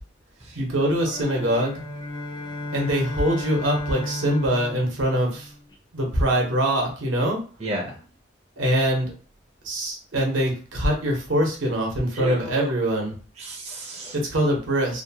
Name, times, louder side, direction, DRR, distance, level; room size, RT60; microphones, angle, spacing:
voice 1, 0.6-1.8 2.7-5.5 5.9-7.4 8.6-9.1 9.6-13.1 14.1-15.0, right 1 dB, 80° right, 0 dB, 0.9 m, -23 dB
sound 1, 1.0-5.7, left 1 dB, 25° left, 0.4 m, -34 dB
voice 2, 7.6-8.0 12.1-12.7 13.4-14.1, equal, 35° right, -2 dB, 0.5 m, -31 dB
2.6 x 2.2 x 2.7 m, 0.38 s
head